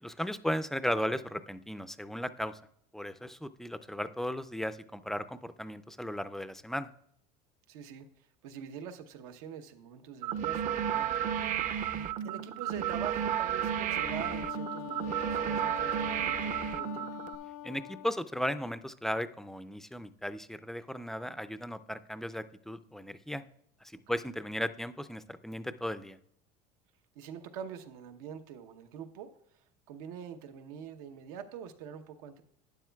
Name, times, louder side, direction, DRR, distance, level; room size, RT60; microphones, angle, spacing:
voice 1, 0.0-2.6 2.9-6.9 17.6-23.4 23.8-26.2, equal, ahead, 12 dB, 0.4 m, -36 dB
voice 2, 7.7-17.1 24.1-24.2 27.1-32.4, right 8 dB, 90° right, 7 dB, 1.0 m, -45 dB
sound 1, 10.2-17.3, right 9 dB, 45° right, 0.6 m, -32 dB
Wind instrument woodwind instrument, 13.9-18.1, left 12 dB, 75° left, 0.4 m, -43 dB
12.0 x 9.2 x 2.3 m, 0.69 s
supercardioid pair, 125°, 19 cm